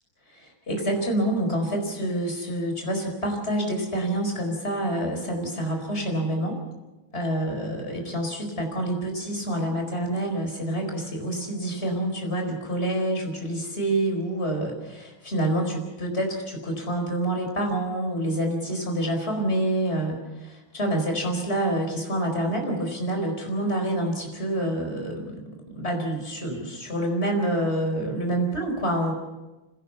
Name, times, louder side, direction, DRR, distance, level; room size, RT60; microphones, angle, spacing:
voice 1, 0.3-6.6 7.1-25.4 25.7-29.1, right 1 dB, 30° left, 3 dB, 4.9 m, -27 dB
25.5 x 17.0 x 7.0 m, 1.1 s
omnidirectional pair, 2.3 m